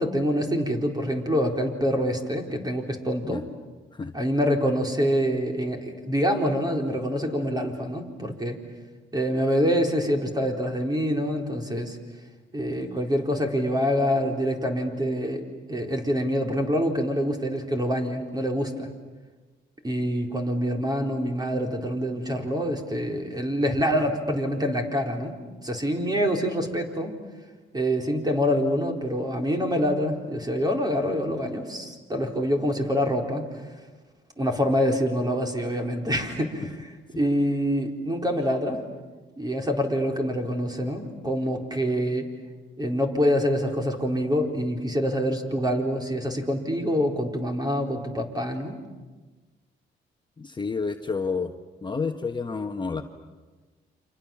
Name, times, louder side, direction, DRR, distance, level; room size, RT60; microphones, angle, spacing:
voice 1, 0.0-3.4 4.1-8.6 9.1-12.0 12.5-15.4 15.7-18.9 19.8-25.3 25.6-27.1 27.7-33.5 34.4-36.9 37.2-38.8 39.4-42.3 42.8-48.7, equal, 20° right, 3 dB, 4.3 m, -26 dB
voice 2, 50.4-51.5 51.8-53.0, left 4 dB, 25° left, 5 dB, 1.3 m, -30 dB
29.5 x 26.5 x 7.3 m, 1.3 s
cardioid pair, 90°, 20 cm